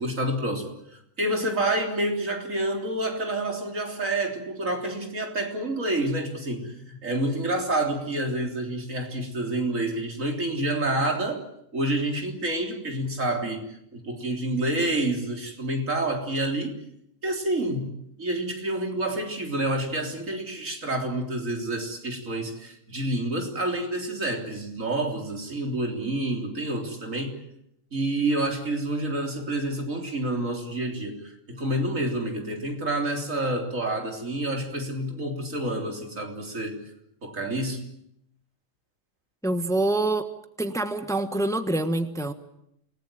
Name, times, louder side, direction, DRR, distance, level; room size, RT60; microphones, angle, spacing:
voice 1, 0.0-11.5 11.7-13.6 13.9-16.8 17.2-27.4 27.9-36.8 37.2-37.8, right 1 dB, 80° right, 3 dB, 4.0 m, -28 dB
voice 2, 39.4-40.3 40.6-42.3, right 2 dB, ahead, 9 dB, 1.3 m, -25 dB
27.5 x 18.5 x 9.0 m, 0.77 s
omnidirectional pair, 1.3 m